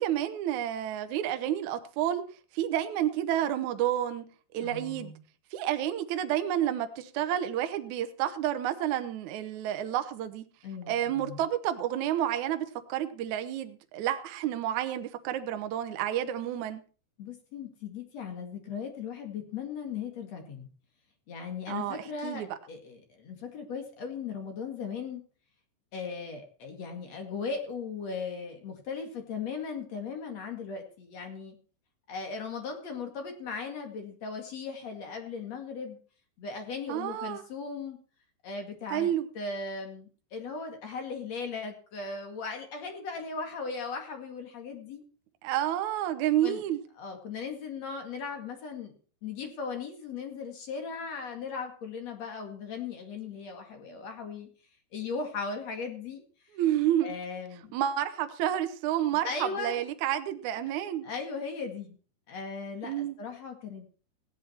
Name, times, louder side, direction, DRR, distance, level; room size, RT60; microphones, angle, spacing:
voice 1, 0.0-2.2 2.5-4.2 4.5-5.1 5.5-10.4 10.9-16.8 21.7-22.0 22.2-22.6 36.9-37.4 38.9-39.3 45.4-46.8 56.5-57.1 57.7-61.1 62.8-63.2, right 11 dB, 80° right, 8 dB, 1.7 m, -30 dB
voice 2, 4.6-5.2 10.6-11.5 17.2-20.7 21.3-25.2 25.9-31.6 32.1-36.0 36.4-38.0 38.4-45.0 46.4-46.6 47.0-48.9 49.2-54.5 54.9-56.2 57.0-57.7 59.2-59.8 61.0-62.0 62.3-63.9, left 5 dB, 45° left, 4 dB, 2.7 m, -38 dB
16.5 x 10.5 x 4.4 m, 0.40 s
omnidirectional pair, 5.0 m